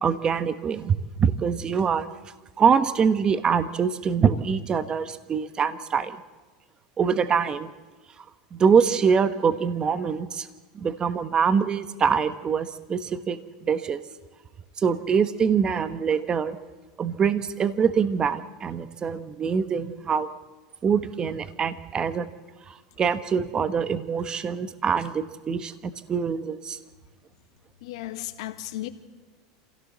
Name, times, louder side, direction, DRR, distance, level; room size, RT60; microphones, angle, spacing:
voice 1, 0.0-2.1 2.6-6.2 7.0-7.7 8.5-10.5 10.7-14.0 14.8-16.6 17.0-20.3 20.8-22.3 22.7-25.7 26.1-26.8, right 6 dB, 25° right, 12 dB, 1.2 m, -24 dB
voice 2, 27.8-28.9, left 15 dB, 75° left, 9 dB, 1.7 m, -34 dB
27.0 x 16.5 x 7.4 m, 1.3 s
supercardioid pair, 120°, 3 cm